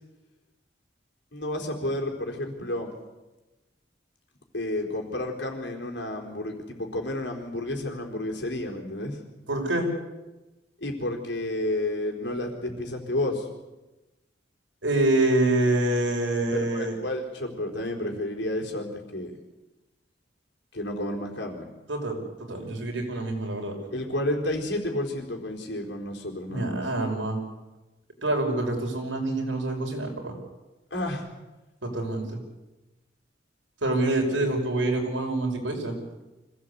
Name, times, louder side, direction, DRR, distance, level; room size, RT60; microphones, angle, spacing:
voice 1, 1.3-2.9 4.5-9.2 10.8-13.5 16.5-19.3 20.7-21.7 23.9-26.8 30.9-31.3 34.3-34.4, left 1 dB, 70° left, 1 dB, 4.3 m, -31 dB
voice 2, 9.5-9.9 14.8-17.0 21.9-23.8 26.5-27.4 28.2-30.4 31.8-32.4 33.8-36.0, right 2 dB, 90° right, 2 dB, 5.6 m, -26 dB
25.5 x 17.0 x 8.4 m, 1.1 s
head